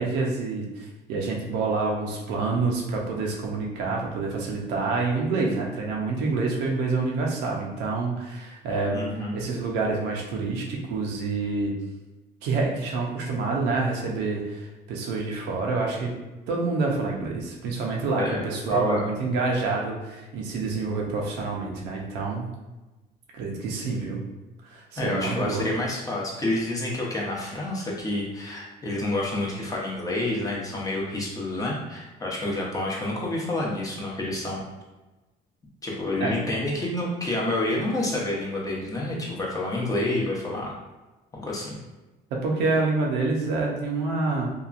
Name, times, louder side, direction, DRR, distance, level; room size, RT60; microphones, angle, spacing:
voice 1, 0.0-9.0 9.3-11.7 12.4-16.1 16.5-22.5 23.3-24.2 24.6-25.6 36.2-36.3 42.3-44.5, right 3 dB, 85° right, -1 dB, 0.6 m, -27 dB
voice 2, 8.9-9.4 18.1-19.0 25.0-34.6 35.8-40.8 41.3-41.8, left 2 dB, 20° left, -4 dB, 0.7 m, -28 dB
2.8 x 2.3 x 2.4 m, 1.1 s
cardioid pair, 110°, 17 cm